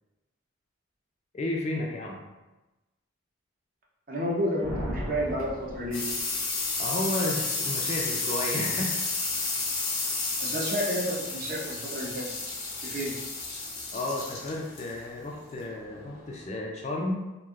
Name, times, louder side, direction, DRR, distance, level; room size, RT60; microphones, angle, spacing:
voice 1, 1.3-2.2 6.8-9.0 13.9-17.1, left 1 dB, 35° left, -1 dB, 0.3 m, -32 dB
voice 2, 4.1-6.1 10.4-12.3 12.8-13.1, equal, 45° right, -3 dB, 0.5 m, -30 dB
Thunder, 4.6-6.8, equal, 90° right, 1.0 m, -37 dB
sound 1, 5.2-16.5, left 3 dB, 90° left, 0.9 m, -32 dB
3.0 x 2.4 x 2.4 m, 1.1 s
head